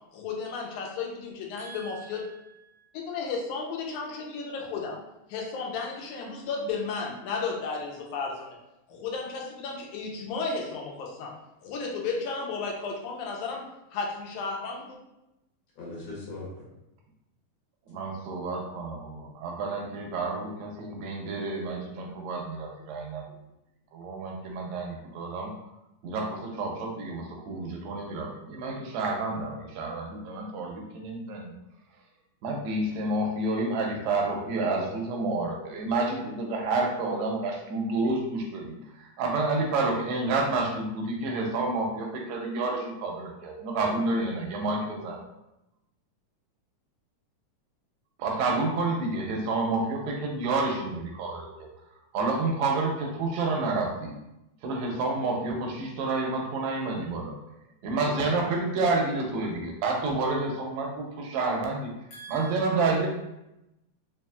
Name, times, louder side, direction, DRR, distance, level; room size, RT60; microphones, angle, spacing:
voice 1, 0.1-2.2 3.1-5.0 5.3-8.6 8.9-11.3 11.6-13.6 13.9-15.0, left 4 dB, 85° left, 2.1 m, -33 dB
voice 2, 1.6-2.8 15.8-16.5 62.1-63.0, equal, 65° left, 2.0 m, -43 dB
voice 3, 17.9-23.2 23.9-25.5 26.0-31.5 32.4-45.2 48.2-51.7 52.1-54.1 54.6-57.4 57.8-61.9 62.3-63.1, right 3 dB, 80° right, 1.7 m, -29 dB
4.8 x 2.9 x 2.2 m
omnidirectional pair, 3.4 m